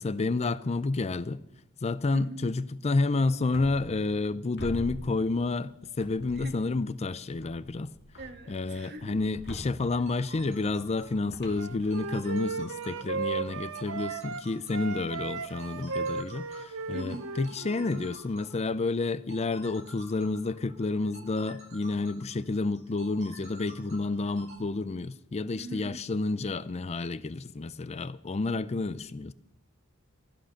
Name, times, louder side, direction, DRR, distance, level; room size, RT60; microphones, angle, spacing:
voice 1, 0.0-1.4 1.8-7.9 8.5-29.3, left 3 dB, 30° left, 0.5 m, -30 dB
voice 2, 2.1-2.5 6.4-6.6 8.2-9.2 16.9-17.3 25.5-26.0, right 1 dB, 50° right, 1.6 m, -41 dB
sound 1, 3.5-4.3 4.6-5.6 6.0-6.8 7.4-12.5, equal, 50° left, 2.6 m, -45 dB
sound 2, 9.9-24.6, right 2 dB, 35° right, 5.8 m, -51 dB
Wind instrument woodwind instrument, 11.5-14.4 14.7-18.2, right 4 dB, 70° right, 0.9 m, -36 dB
15.0 x 11.5 x 6.4 m
head